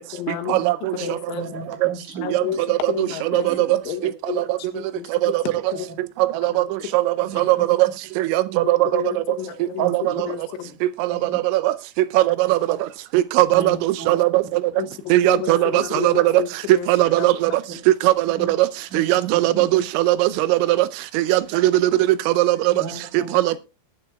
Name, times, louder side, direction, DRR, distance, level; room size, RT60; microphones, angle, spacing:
voice 1, 0.1-0.7 0.9-1.5 2.2-5.4 5.7-5.9 6.5-7.4 8.6-10.8 14.8-16.9 17.2-17.3, left 9 dB, 85° left, 3.8 m, -31 dB
voice 2, 1.3-2.6 3.5-3.6 7.3-7.7 9.8-9.9 11.1-11.4 13.5-14.2 14.8-14.9 17.5-17.6 18.3-18.5 18.9-19.8 22.7-23.4, right 3 dB, 55° right, 2.5 m, -35 dB
voice 3, 3.3-3.7 5.2-5.4 6.4-6.6 6.9-7.0 7.4-7.9 8.2-9.0 9.8-9.9 11.3-11.7 12.2-12.6 13.1-14.4 15.1-16.3 16.9-17.5 18.0-18.7 18.9-20.8 21.2-21.7 22.3-22.6 23.5-23.6, right 17 dB, 85° right, 3.0 m, -19 dB
20.5 x 8.8 x 2.2 m
omnidirectional pair, 5.3 m